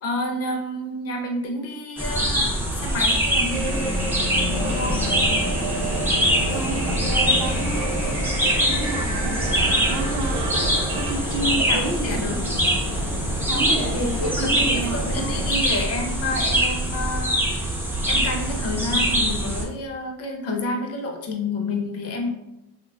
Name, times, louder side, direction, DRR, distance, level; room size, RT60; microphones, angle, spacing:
voice 1, 0.0-4.3 4.6-5.1 11.6-12.4 14.0-17.7 18.1-22.3, left 2 dB, 45° left, 2 dB, 0.5 m, -29 dB
sound 1, 2.0-19.6, right 1 dB, 5° right, 0.4 m, -24 dB
sound 2, 3.5-11.1, right 2 dB, 80° right, 0.8 m, -30 dB
sound 3, 4.5-15.5, left 2 dB, 90° left, 0.7 m, -33 dB
voice 2, 6.5-10.4 11.1-12.2 13.5-15.5, right 2 dB, 45° right, -1 dB, 0.6 m, -31 dB
2.9 x 2.2 x 2.3 m, 0.89 s
cardioid pair, 125°, 35 cm